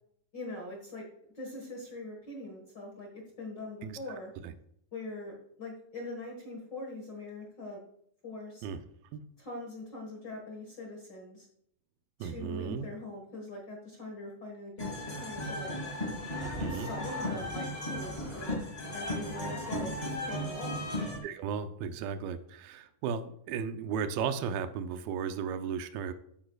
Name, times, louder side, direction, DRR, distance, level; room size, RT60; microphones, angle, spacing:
voice 1, 0.3-1.1 1.3-4.3 4.9-7.8 8.2-8.6 9.4-11.5 12.2-15.7 16.7-18.6 18.9-20.8, left 2 dB, 85° left, -1 dB, 0.9 m, -42 dB
voice 2, 12.2-12.9 16.4-16.9 21.2-26.1, right 7 dB, 80° right, 9 dB, 2.2 m, -35 dB
sound 1, 14.8-21.2, left 1 dB, 35° left, 0.6 m, -35 dB
13.0 x 8.9 x 2.3 m, 0.68 s
omnidirectional pair, 4.8 m